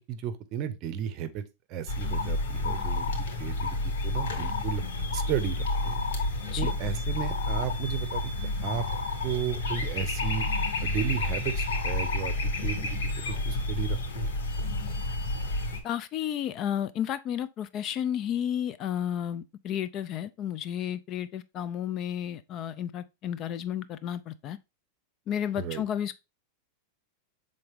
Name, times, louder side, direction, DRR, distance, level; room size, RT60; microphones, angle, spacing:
voice 1, 0.0-1.4 1.7-3.8 4.0-4.8 5.1-6.0 6.6-8.3 8.6-8.8 9.2-10.5 10.8-12.3 12.6-14.3 25.6-25.8, right 9 dB, 40° right, 0.8 m, -34 dB
sound 1, 1.9-15.8, left 2 dB, 80° left, 2.6 m, -30 dB
voice 2, 15.8-24.6 25.3-26.2, left 10 dB, 35° left, 0.4 m, -32 dB
7.0 x 3.8 x 3.5 m
supercardioid pair, 140°, 0 cm